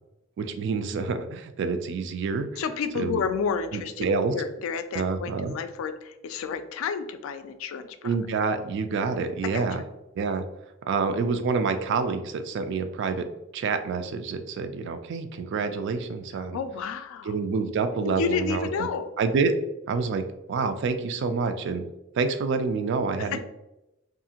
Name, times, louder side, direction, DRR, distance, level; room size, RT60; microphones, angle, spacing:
voice 1, 0.4-2.6 3.0-3.2 3.7-4.3 4.9-5.5 8.0-9.8 10.2-10.4 10.9-13.3 13.5-16.6 17.3-18.9 19.2-19.5 19.9-20.2 20.5-21.8 22.1-23.4, right 4 dB, 60° right, 8 dB, 0.3 m, -27 dB
voice 2, 2.6-4.1 4.3-8.2 9.4-9.6 16.5-17.3 18.0-19.1 23.2-23.4, left 6 dB, 80° left, 10 dB, 0.3 m, -30 dB
2.7 x 2.5 x 2.8 m, 0.93 s
head